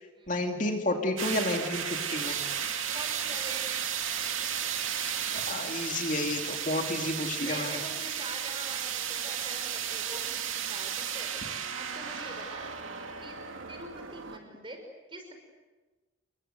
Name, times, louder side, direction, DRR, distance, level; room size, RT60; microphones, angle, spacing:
voice 1, 0.3-2.4 5.3-7.8, left 2 dB, 40° left, 3 dB, 2.7 m, -31 dB
sound 1, 1.2-14.4, right 8 dB, 90° right, 2.6 m, -34 dB
voice 2, 2.9-4.0 7.4-12.6 13.2-13.4 13.7-14.8 15.1-15.3, right 2 dB, 25° right, 4 dB, 5.3 m, -44 dB
29.5 x 22.5 x 8.1 m, 1.3 s
head